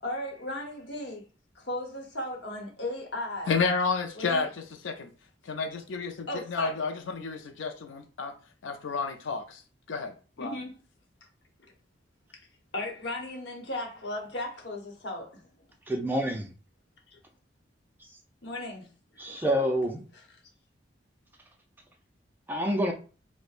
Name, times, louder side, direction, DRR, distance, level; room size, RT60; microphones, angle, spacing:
voice 1, 0.0-1.2 1.5-3.6 4.1-4.5 6.3-6.8 10.4-10.7 12.7-15.4 17.1-17.2 18.4-18.9 19.1-19.4, left 1 dB, 65° left, 1.0 m, -36 dB
voice 2, 3.5-5.1 5.4-8.3 8.6-9.6 9.9-10.6, left 4 dB, 85° left, 0.4 m, -31 dB
voice 3, 15.9-16.5 19.2-20.0 22.5-22.9, equal, 10° right, 0.4 m, -27 dB
4.8 x 2.1 x 2.5 m
head